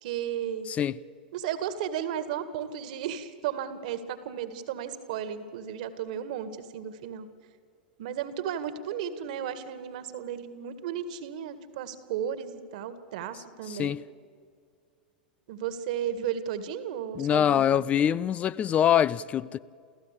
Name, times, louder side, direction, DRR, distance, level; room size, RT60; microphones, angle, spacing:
voice 1, 0.0-0.7 1.3-7.3 8.0-14.0 15.5-17.8, right 9 dB, 55° right, 1.9 m, -34 dB
voice 2, 13.7-14.0 17.2-19.6, left 9 dB, 25° left, 0.5 m, -24 dB
28.5 x 14.5 x 8.4 m
figure-of-eight pair, 95°, 5 cm